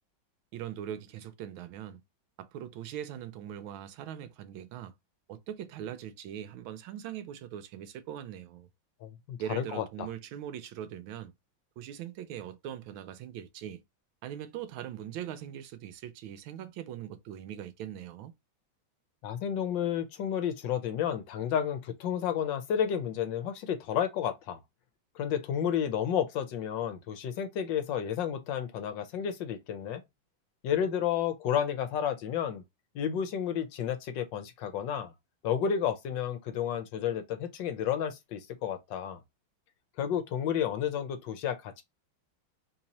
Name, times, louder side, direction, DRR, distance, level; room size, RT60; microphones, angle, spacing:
voice 1, 0.5-2.0 2.4-4.9 5.3-8.7 9.4-11.3 11.8-13.8 14.2-18.3, right 10 dB, 80° right, 1.4 m, -41 dB
voice 2, 9.0-10.1 19.2-24.6 25.2-30.0 30.6-32.6 32.9-35.1 35.4-39.2 40.0-41.8, left 9 dB, 70° left, 1.2 m, -31 dB
4.1 x 2.8 x 2.8 m
omnidirectional pair, 2.2 m